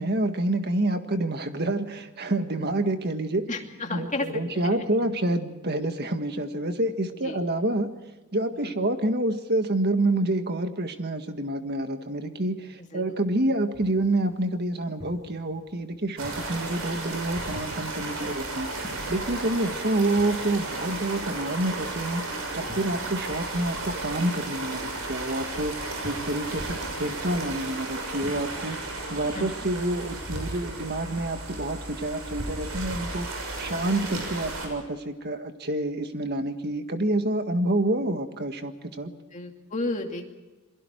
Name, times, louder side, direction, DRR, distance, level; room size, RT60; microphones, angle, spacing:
voice 1, 0.0-3.5 3.9-7.9 8.3-24.8 25.1-28.8 29.1-39.1, right 1 dB, 45° right, 7 dB, 1.7 m, -28 dB
voice 2, 3.5-4.3 4.5-4.8 7.2-7.4 8.5-8.7 12.8-13.1 18.2-18.4 19.6-19.7 22.9-23.1 29.3-29.5 33.7-33.8 39.1-40.2, left 2 dB, 35° left, 3 dB, 2.5 m, -34 dB
sound 1, 13.2-29.1, equal, 15° right, 3.5 m, -49 dB
sound 2, 16.2-34.7, right 2 dB, 70° right, 6.8 m, -34 dB
28.0 x 22.5 x 4.6 m, 1.2 s
head